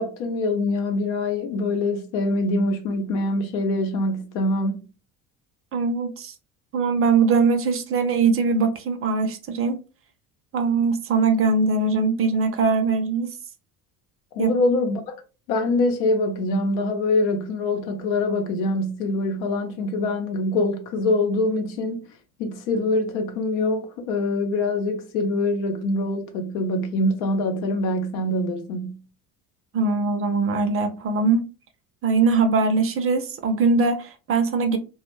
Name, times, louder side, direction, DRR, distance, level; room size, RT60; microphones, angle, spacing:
voice 1, 0.0-4.8 14.3-15.1 15.5-22.1 22.4-29.0, left 2 dB, 80° left, 0.7 m, -24 dB
voice 2, 5.7-6.3 6.7-9.8 10.5-13.3 14.4-14.5 29.7-31.4 32.0-34.8, right 4 dB, 30° right, 0.6 m, -21 dB
2.3 x 2.1 x 3.1 m
hypercardioid pair, 70°, 42 cm